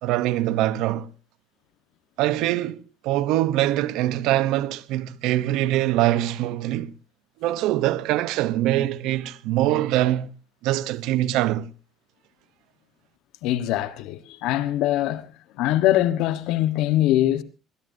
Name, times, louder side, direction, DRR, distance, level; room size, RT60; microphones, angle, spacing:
voice 1, 0.0-1.1 2.2-6.9 7.4-10.3 10.6-11.7, right 14 dB, 80° right, 0.8 m, -23 dB
voice 2, 13.4-15.3 15.6-17.4, left 13 dB, 80° left, 1.2 m, -22 dB
20.5 x 20.0 x 2.7 m
cardioid pair, 110°, 0 cm